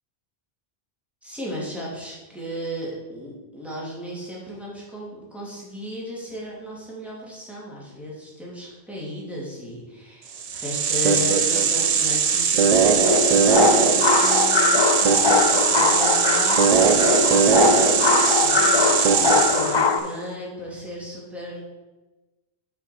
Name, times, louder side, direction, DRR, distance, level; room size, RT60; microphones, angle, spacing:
voice 1, 1.2-17.1 17.6-21.6, equal, ahead, -6 dB, 2.4 m, -35 dB
sound 1, 10.4-19.9, right 6 dB, 50° right, 0.5 m, -20 dB
sound 2, 13.0-20.0, left 4 dB, 45° left, 0.3 m, -21 dB
6.0 x 5.7 x 5.8 m, 1.1 s
omnidirectional pair, 1.1 m